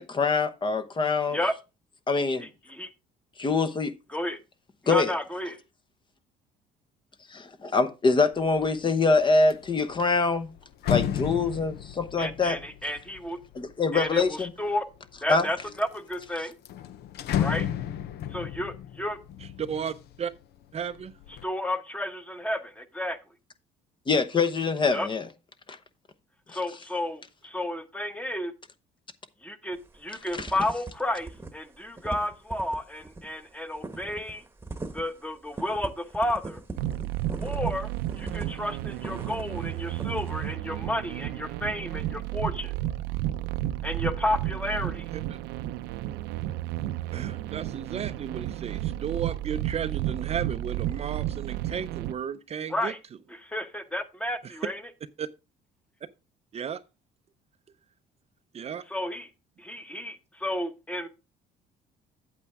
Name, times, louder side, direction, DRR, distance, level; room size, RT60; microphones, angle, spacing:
voice 1, 0.0-1.4 2.1-2.5 3.4-3.9 4.9-5.1 7.3-10.5 10.9-12.6 13.5-14.5 15.3-15.5 24.1-25.3 30.3-30.5, left 4 dB, 30° left, 0.9 m, -24 dB
voice 2, 2.4-2.9 4.1-4.4 4.9-5.6 12.2-13.4 13.9-14.8 15.2-16.5 17.4-17.7 18.3-19.2 21.4-23.2 24.9-25.1 26.5-28.5 29.4-34.4 34.9-36.6 37.4-37.9 38.2-42.7 43.8-45.0 52.7-53.0 53.4-54.8 58.9-59.3 59.6-61.1, left 1 dB, 5° left, 1.1 m, -32 dB
sound 1, 8.4-8.8 9.2-14.5 15.1-15.8 16.1-16.2 16.5-20.4 20.8-21.4, left 10 dB, 75° left, 0.7 m, -33 dB
voice 3, 19.4-20.3 20.7-21.1 45.1-45.4 47.1-52.9 54.4-54.6 55.2-55.3 56.5-56.8 58.5-58.8, right 8 dB, 40° right, 0.5 m, -34 dB
sound 2, 29.7-30.0 30.3-30.9 31.2-31.5 31.7-39.6 40.0-40.3, right 3 dB, 15° right, 1.1 m, -39 dB
sound 3, 36.8-52.1, right 14 dB, 90° right, 0.7 m, -32 dB
8.4 x 8.3 x 3.5 m
cardioid pair, 110°, 17 cm